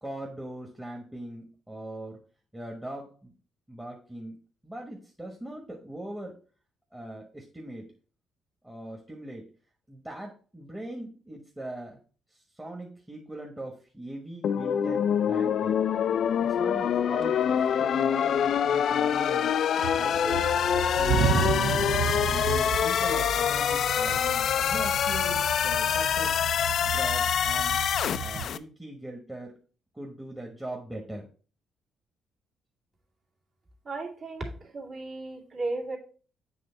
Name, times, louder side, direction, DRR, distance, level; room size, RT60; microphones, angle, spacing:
voice 1, 0.0-2.2 2.5-3.3 3.7-6.4 6.9-7.9 8.6-9.5 9.9-12.0 12.3-15.8 16.4-19.6 19.9-20.4 20.9-21.3 21.7-26.4 26.8-27.8 28.2-29.5 29.9-31.3, right 1 dB, 10° right, -1 dB, 1.2 m, -40 dB
sound 1, 14.4-28.6, left 8 dB, 65° left, 0.3 m, -25 dB
sound 2, 16.6-16.7 17.2-17.9 18.3-19.5 19.8-28.5, right 7 dB, 75° right, 0.6 m, -32 dB
voice 2, 33.8-36.0, right 2 dB, 50° right, -2 dB, 2.1 m, -35 dB
7.7 x 3.2 x 4.4 m, 0.39 s
cardioid pair, 90°, 0 cm